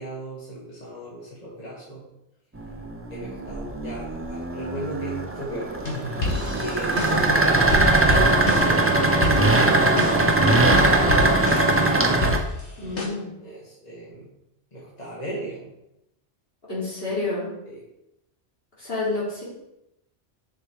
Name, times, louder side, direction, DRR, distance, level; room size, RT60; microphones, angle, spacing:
voice 1, 0.0-2.1 3.1-5.7 6.5-7.9 9.8-12.7 13.0-13.1 13.4-14.3 14.7-15.7 17.7-17.8, right 1 dB, 35° left, -7 dB, 2.0 m, -37 dB
sound 1, 2.6-12.4, right 2 dB, 15° right, 0.6 m, -21 dB
sound 2, 5.8-7.4 7.7-8.9 9.2-10.4 10.7-11.9 12.2-13.1, left 3 dB, 90° left, 2.0 m, -29 dB
voice 2, 12.8-13.3 16.7-17.5 18.8-19.4, left 3 dB, 55° left, -8 dB, 3.7 m, -29 dB
6.8 x 5.8 x 4.7 m, 0.88 s
omnidirectional pair, 1.2 m